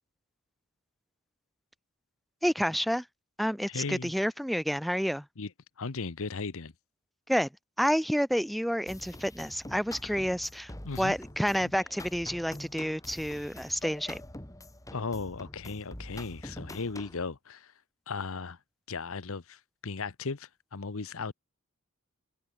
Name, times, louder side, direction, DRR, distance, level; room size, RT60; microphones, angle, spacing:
voice 1, 2.4-3.0 3.4-5.2 7.3-7.5 7.8-10.7 11.0-14.2, equal, ahead, 1.6 m, -29 dB
voice 2, 3.7-4.1 5.4-5.5 5.8-6.7 10.8-11.1 11.6-11.7 14.9-17.7 18.1-18.6 18.9-21.3, left 4 dB, 65° left, 0.9 m, -36 dB
sound 1, 8.9-17.2, left 1 dB, 15° left, 2.8 m, -45 dB
head